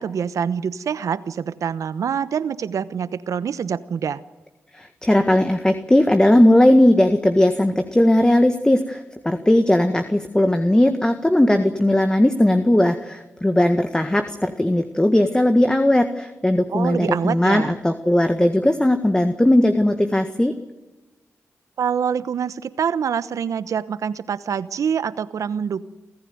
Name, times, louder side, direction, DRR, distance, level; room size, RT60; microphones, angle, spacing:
voice 1, 0.0-4.2 16.7-17.7 21.8-25.9, right 7 dB, 80° right, 15 dB, 1.0 m, -25 dB
voice 2, 4.8-20.6, left 1 dB, 15° left, 8 dB, 1.7 m, -18 dB
27.0 x 14.0 x 9.5 m, 1.1 s
cardioid pair, 55°, 6 cm